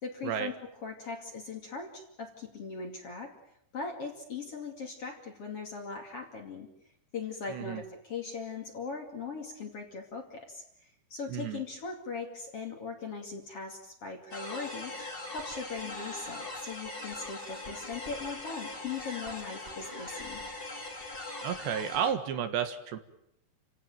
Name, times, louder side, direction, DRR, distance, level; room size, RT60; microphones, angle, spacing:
voice 1, 0.0-3.3 3.7-6.7 7.1-14.9 15.3-20.4, left 4 dB, 40° left, 3 dB, 2.9 m, -40 dB
voice 2, 7.5-7.8 11.3-11.6 21.4-23.0, right 8 dB, 75° right, 8 dB, 3.7 m, -32 dB
sound 1, 14.3-22.1, left 2 dB, 15° left, 2.3 m, -41 dB
29.0 x 17.0 x 9.2 m, 0.77 s
omnidirectional pair, 5.1 m